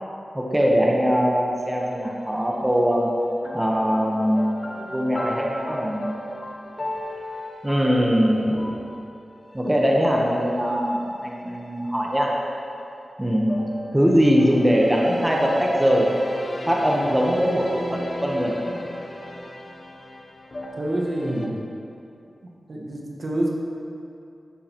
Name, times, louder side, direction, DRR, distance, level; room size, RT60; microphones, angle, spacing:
voice 1, 0.3-3.1 3.5-6.1 7.6-8.8 9.5-12.3 13.2-13.6 13.9-16.1 16.7-18.5, equal, 15° right, -3 dB, 1.1 m, -21 dB
sound 1, 1.6-2.7 3.4-11.6 13.5-21.5, left 1 dB, 45° left, 0.9 m, -37 dB
voice 2, 20.8-21.6 22.7-23.5, right 1 dB, 55° right, -2 dB, 1.4 m, -26 dB
12.5 x 6.5 x 3.0 m, 2.7 s
wide cardioid pair, 70°, 0 cm